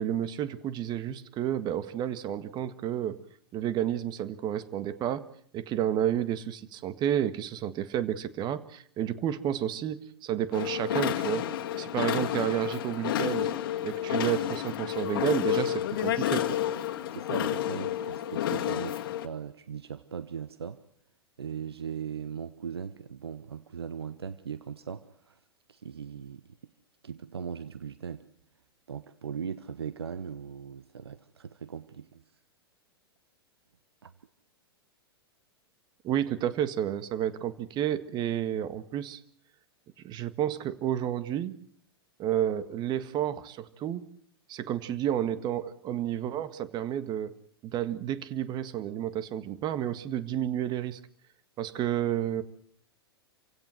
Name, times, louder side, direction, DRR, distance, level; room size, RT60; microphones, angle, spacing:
voice 1, 0.0-3.2 3.5-5.2 5.5-11.4 11.8-13.5 13.8-16.6 36.0-39.2 40.0-41.6 42.2-44.0 44.5-47.3 47.6-51.0 51.6-52.4, right 10 dB, 35° right, 1.7 m, -31 dB
sound 1, 10.5-19.3, left 11 dB, 60° left, 1.9 m, -30 dB
voice 2, 17.1-20.8 21.4-25.4 25.7-26.4 27.0-28.3 28.9-32.2 34.0-34.1, right 7 dB, 80° right, 1.1 m, -39 dB
27.5 x 16.5 x 7.9 m
figure-of-eight pair, 100°, 13 cm